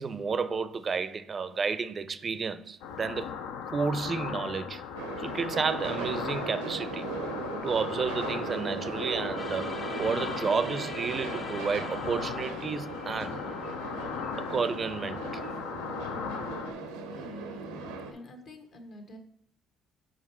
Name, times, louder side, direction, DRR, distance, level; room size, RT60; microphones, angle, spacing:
voice 1, 0.0-3.3 3.7-4.8 5.2-7.1 7.6-9.7 10.0-13.4 14.4-15.4, right 5 dB, 40° right, 0.4 m, -31 dB
sound 1, 2.8-16.7, left 7 dB, 80° left, 0.4 m, -38 dB
sound 2, 4.9-18.1, right 3 dB, 90° right, 0.6 m, -38 dB
sound 3, 9.4-15.3, left 3 dB, 40° left, 1.3 m, -46 dB
voice 2, 16.0-16.6 17.1-17.7 18.1-19.2, equal, 60° left, 1.2 m, -48 dB
5.0 x 4.5 x 4.3 m
hypercardioid pair, 60°, 0 cm